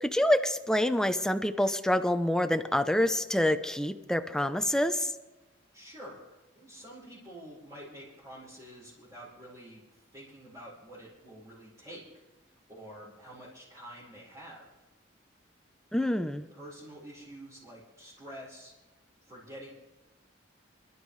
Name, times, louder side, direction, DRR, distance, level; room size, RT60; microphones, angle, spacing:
voice 1, 0.0-5.1 15.9-16.5, left 1 dB, 5° left, 8 dB, 0.7 m, -27 dB
voice 2, 5.7-12.2 12.7-14.7 16.5-18.7 19.2-19.7, equal, 20° right, -9 dB, 4.6 m, -48 dB
27.0 x 12.5 x 3.2 m, 1.1 s
head